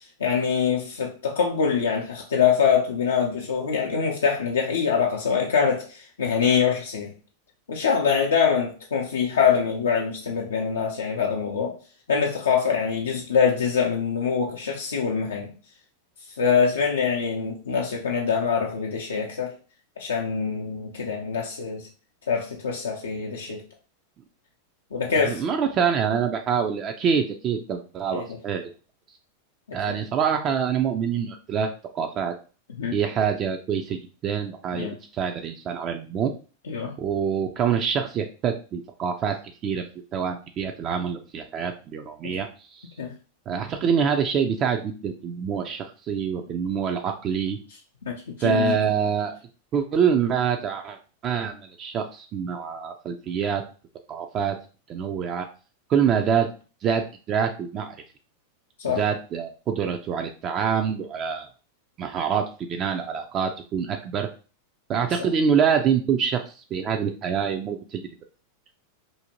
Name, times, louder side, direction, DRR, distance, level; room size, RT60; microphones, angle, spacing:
voice 1, 0.2-7.1 7.7-11.7 12.1-15.5 16.4-19.5 20.0-21.8 22.3-23.6 24.9-25.4 28.1-28.4 29.7-30.0 32.8-33.0 34.7-34.9 36.7-36.9 43.0-43.1 48.1-48.8 58.8-59.0, left 6 dB, 85° left, 0.4 m, -24 dB
voice 2, 25.1-28.7 29.7-32.3 32.9-34.9 35.1-36.3 37.0-39.4 39.6-39.8 40.1-42.9 43.5-47.6 48.4-49.4 49.7-51.0 51.2-53.6 54.1-54.6 54.9-55.5 55.9-56.5 56.8-58.0 58.9-61.5 62.0-64.3 64.9-66.4 66.7-68.0, right 7 dB, 40° right, 0.3 m, -25 dB
2.6 x 2.1 x 2.8 m
hypercardioid pair, 105°, 0 cm